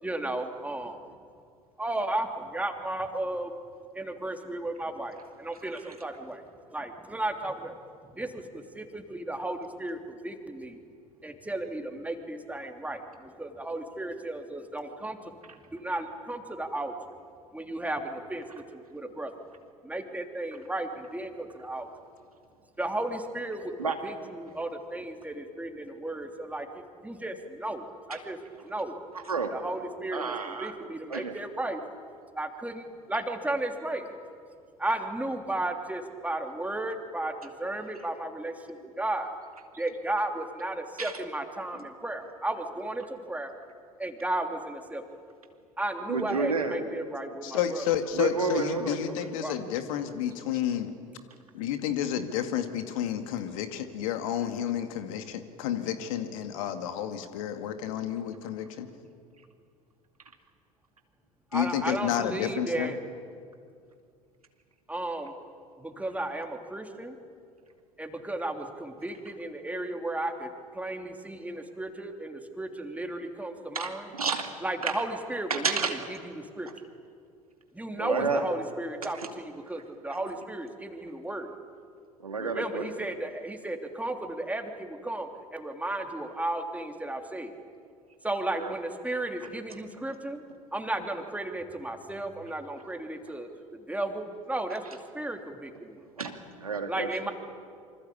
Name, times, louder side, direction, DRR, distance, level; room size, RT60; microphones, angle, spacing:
voice 1, 0.0-1.0 1.8-3.5 3.9-6.4 6.7-7.8 8.1-10.8 11.2-15.3 15.7-16.9 17.5-19.3 19.8-21.9 22.8-23.7 24.0-28.4 28.6-29.0 29.5-31.8 32.3-34.2 34.8-39.3 39.8-43.5 44.0-45.0 45.8-47.9 49.4-49.6 61.5-63.0 64.9-65.3 65.8-67.1 68.0-74.1 74.6-76.7 77.7-81.5 82.4-87.5 88.2-90.4 90.7-96.0 96.9-97.3, right 1 dB, 10° right, 5 dB, 3.3 m, -34 dB
voice 2, 29.1-29.5 30.1-30.7 31.1-31.4 41.0-41.1 46.1-46.8 48.1-49.3 73.7-74.5 74.8-75.0 75.5-76.0 78.0-78.4 79.0-79.3 82.2-83.1 88.5-88.7 96.2-97.3, right 4 dB, 90° right, 5 dB, 2.4 m, -31 dB
voice 3, 47.4-50.9 51.5-58.9 61.5-62.9 78.2-78.3, left 10 dB, 65° left, 8 dB, 2.2 m, -30 dB
27.0 x 25.0 x 8.7 m, 2.3 s
figure-of-eight pair, 70°, 18 cm